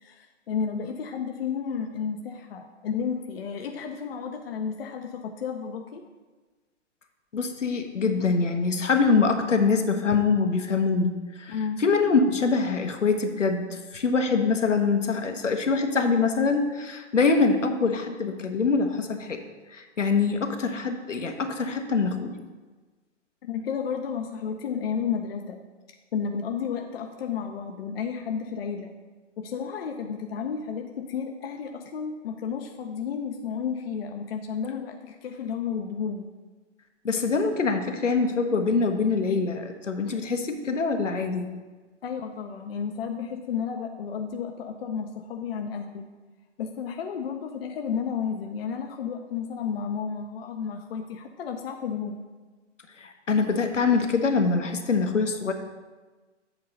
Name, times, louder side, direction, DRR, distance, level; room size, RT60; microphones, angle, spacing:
voice 1, 0.0-6.0 11.5-11.8 23.4-25.6 26.1-28.9 29.4-36.3 42.0-46.1 46.6-52.2, left 6 dB, 55° left, 4 dB, 0.7 m, -32 dB
voice 2, 7.3-11.1 11.4-19.4 19.7-22.4 37.0-41.5 53.0-55.5, left 4 dB, 80° left, 4 dB, 1.1 m, -24 dB
8.0 x 3.8 x 6.5 m, 1.3 s
figure-of-eight pair, 125°, 36 cm